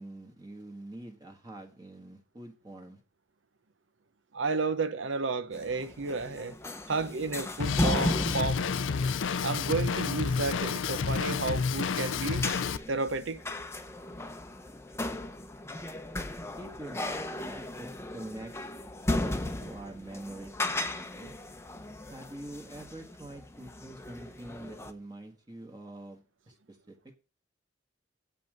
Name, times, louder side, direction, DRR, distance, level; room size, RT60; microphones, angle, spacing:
voice 1, 0.0-3.0 16.6-18.5 19.2-21.3 22.1-26.9, right 1 dB, 20° right, 1.3 m, -45 dB
voice 2, 4.3-6.6 6.9-8.6 9.4-12.5 12.9-13.4, right 4 dB, 90° right, 0.8 m, -32 dB
sound 1, 5.5-24.9, left 1 dB, 15° left, 0.7 m, -36 dB
Drum kit, 7.6-12.8, left 5 dB, 90° left, 0.5 m, -30 dB
7.7 x 5.5 x 7.5 m
head